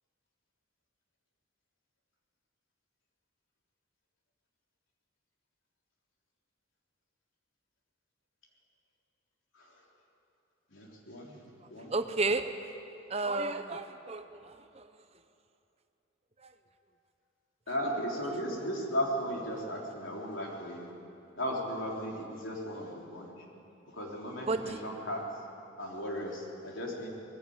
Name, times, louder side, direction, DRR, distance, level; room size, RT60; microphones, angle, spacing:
voice 1, 10.7-11.4 11.7-11.9 17.7-20.9 21.4-23.3 23.9-25.2 25.8-27.1, equal, 75° left, -2 dB, 3.7 m, -36 dB
voice 2, 11.9-12.5 13.1-14.8 24.5-24.8, right 3 dB, 30° right, 9 dB, 0.7 m, -32 dB
20.0 x 15.5 x 8.7 m, 2.8 s
head